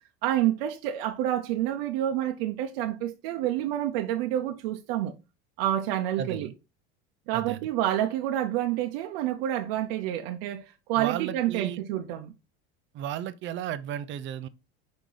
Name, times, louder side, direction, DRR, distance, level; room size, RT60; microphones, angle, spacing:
voice 1, 0.0-5.1 5.6-6.5 7.3-12.3, right 12 dB, 80° right, 0.8 m, -28 dB
voice 2, 6.2-6.5 7.3-7.6 11.0-11.8 12.9-14.5, right 11 dB, 40° right, 0.5 m, -34 dB
5.2 x 4.7 x 3.9 m
supercardioid pair, 130°, 29 cm